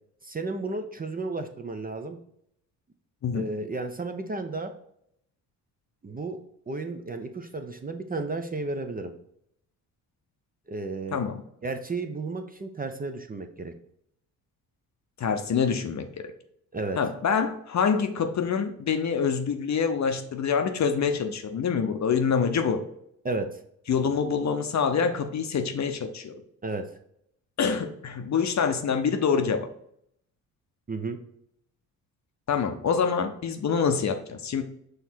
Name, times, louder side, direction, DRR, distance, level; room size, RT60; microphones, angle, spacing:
voice 1, 0.2-2.2 3.3-4.7 6.0-6.4 6.7-9.1 10.7-11.2 11.6-13.7 16.7-17.0 23.2-23.5 26.6-26.8 30.9-31.2, right 3 dB, 20° right, 6 dB, 0.6 m, -33 dB
voice 2, 15.2-16.1 17.0-22.8 23.9-26.3 27.6-29.7 32.5-34.6, left 6 dB, 40° left, 7 dB, 0.8 m, -26 dB
6.3 x 3.3 x 4.5 m, 0.71 s
hypercardioid pair, 45°, 45 cm